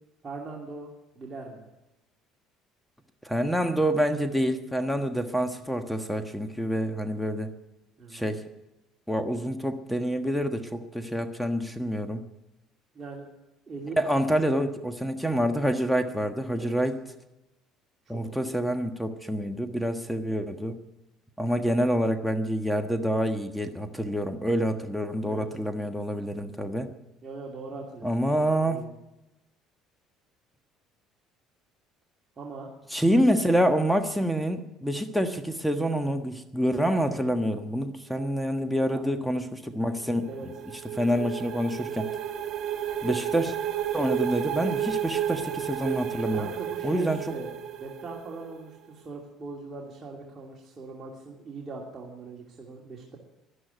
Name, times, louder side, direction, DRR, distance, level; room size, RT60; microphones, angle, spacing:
voice 1, 0.2-0.9 1.1-1.7 8.0-8.3 12.9-13.3 13.7-14.0 16.6-16.8 18.1-18.6 24.9-25.0 25.2-25.5 27.2-28.1 28.5-28.9 32.4-32.7 40.3-40.5 46.3-47.5 47.8-53.2, right 3 dB, 35° right, -2 dB, 2.7 m, -40 dB
voice 2, 3.2-7.5 8.1-8.4 9.1-12.2 14.0-17.0 18.1-20.8 21.4-26.9 28.0-28.9 32.9-40.5 40.9-42.1 43.0-43.5 43.9-46.5 46.8-47.2, equal, ahead, 7 dB, 1.4 m, -27 dB
sound 1, 39.9-48.6, right 10 dB, 55° right, 2.4 m, -32 dB
11.5 x 11.0 x 9.3 m, 0.95 s
supercardioid pair, 85°, 0 cm